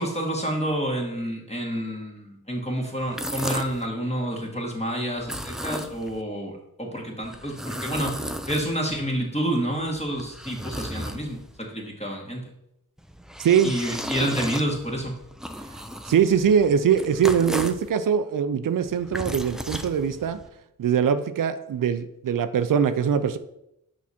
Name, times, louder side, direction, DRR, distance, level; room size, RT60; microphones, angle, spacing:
voice 1, 0.0-12.5 13.6-15.2, equal, 20° left, 0 dB, 1.8 m, -29 dB
sound 1, 3.0-3.9 5.2-6.2 7.2-9.0 9.7-11.6 13.0-17.9 18.8-20.5, equal, ahead, 0.4 m, -35 dB
voice 2, 13.4-13.8 16.0-20.4 20.8-23.4, right 8 dB, 65° right, 11 dB, 0.5 m, -22 dB
6.1 x 4.9 x 4.3 m, 0.83 s
cardioid pair, 65°, 36 cm